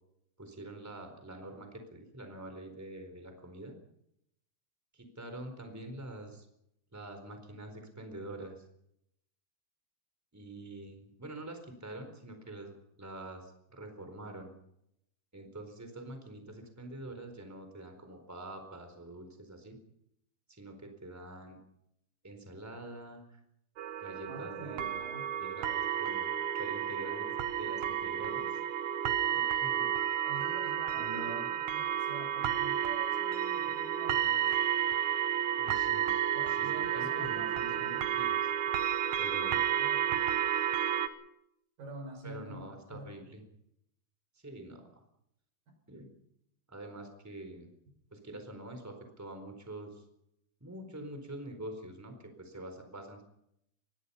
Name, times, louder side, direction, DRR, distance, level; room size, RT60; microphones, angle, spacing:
voice 1, 0.4-3.8 4.9-6.5 6.9-8.6 10.3-14.5 15.3-19.8 20.5-21.6 22.2-23.4 24.0-25.1 25.4-28.6 29.3-29.9 30.9-31.5 35.6-36.1 36.6-38.5 39.2-39.6 42.2-43.4 44.4-45.0 45.9-46.1 46.7-47.7 48.1-50.0 50.6-53.2, right 1 dB, 5° right, 6 dB, 3.7 m, -45 dB
sound 1, 23.8-41.1, right 10 dB, 70° right, 1.9 m, -31 dB
voice 2, 24.3-25.3 30.2-34.5 36.4-38.1 39.7-40.4 41.8-43.2, right 2 dB, 55° right, 4 dB, 7.1 m, -47 dB
24.0 x 21.0 x 5.7 m, 0.77 s
omnidirectional pair, 4.8 m